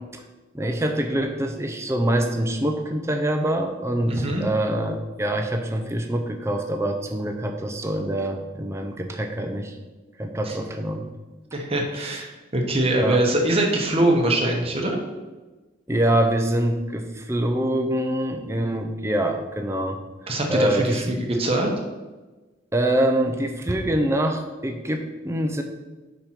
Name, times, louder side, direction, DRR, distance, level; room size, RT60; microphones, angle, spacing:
voice 1, 0.5-9.7 10.2-11.1 11.9-12.2 13.0-13.2 15.9-20.0 20.5-21.2 22.7-25.6, right 1 dB, 15° right, 4 dB, 0.6 m, -25 dB
voice 2, 4.1-4.4 10.5-10.6 11.5-15.0 20.3-21.7, right 1 dB, 30° right, 1 dB, 1.0 m, -23 dB
5.1 x 4.4 x 5.8 m, 1.2 s
head